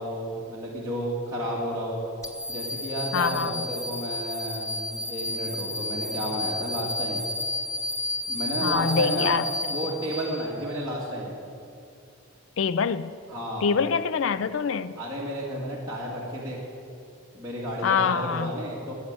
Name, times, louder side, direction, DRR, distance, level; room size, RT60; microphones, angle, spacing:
voice 1, 0.0-2.0 2.5-7.2 8.3-9.4 9.7-11.3 13.3-13.7 15.0-16.6 17.3-18.9, equal, 20° right, -7 dB, 2.0 m, -32 dB
sound 1, 2.2-10.7, left 1 dB, 15° left, 0.9 m, -32 dB
voice 2, 3.1-3.6 8.6-9.4 12.6-13.2 13.6-15.0 17.8-18.5, left 6 dB, 70° left, 15 dB, 0.4 m, -25 dB
15.0 x 6.5 x 9.5 m, 2.6 s
head